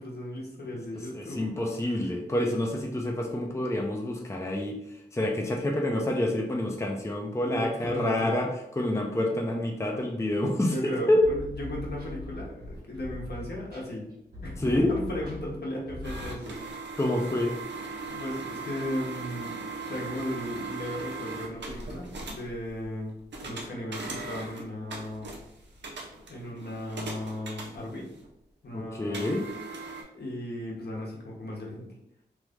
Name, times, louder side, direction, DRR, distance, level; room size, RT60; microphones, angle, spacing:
voice 1, 0.0-1.5 1.8-2.1 7.4-8.4 10.6-14.1 14.4-14.6 14.9-16.6 18.1-23.1 23.4-25.3 26.3-28.1 28.6-29.4 30.1-31.9, left 1 dB, 65° left, -2 dB, 1.0 m, -36 dB
voice 2, 1.1-4.8 5.1-8.5 8.8-11.2 14.6-14.9 17.0-17.5 28.7-29.5, left 1 dB, 15° left, 0 dB, 0.6 m, -27 dB
sound 1, 11.2-16.4, left 1 dB, 60° right, 1.4 m, -41 dB
sound 2, 16.0-28.3 29.1-30.0, right 3 dB, 85° right, 0.7 m, -39 dB
3.1 x 2.5 x 3.5 m, 0.83 s
cardioid pair, 45°, 18 cm